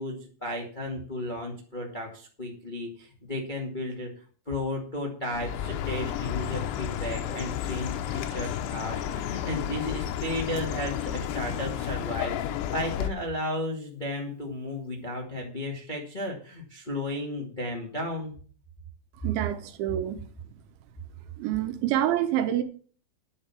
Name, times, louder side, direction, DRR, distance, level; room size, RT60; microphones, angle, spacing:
voice 1, 0.0-4.1 4.4-18.3, left 1 dB, 40° left, 0.6 m, -34 dB
Chirp tweet, 5.3-13.1, left 10 dB, 80° left, 3.1 m, -32 dB
voice 2, 19.2-20.2 21.4-22.6, right 12 dB, 80° right, 3.3 m, -27 dB
10.5 x 6.7 x 7.4 m
omnidirectional pair, 5.4 m